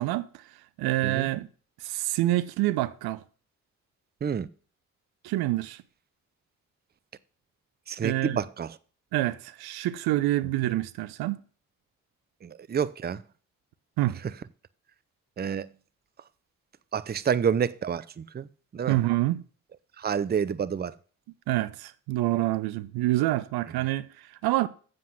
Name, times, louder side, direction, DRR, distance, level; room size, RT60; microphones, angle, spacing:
voice 1, 0.0-1.5 1.8-3.2 5.2-5.8 8.0-8.4 9.1-11.4 14.0-14.2 18.9-19.4 21.5-24.7, right 16 dB, 75° right, 0.6 m, -27 dB
voice 2, 7.9-8.8 10.7-10.8 12.4-13.2 15.4-15.7 16.9-19.0 20.0-20.9, right 7 dB, 25° right, 0.5 m, -29 dB
7.7 x 7.4 x 5.7 m
hypercardioid pair, 45°, 38 cm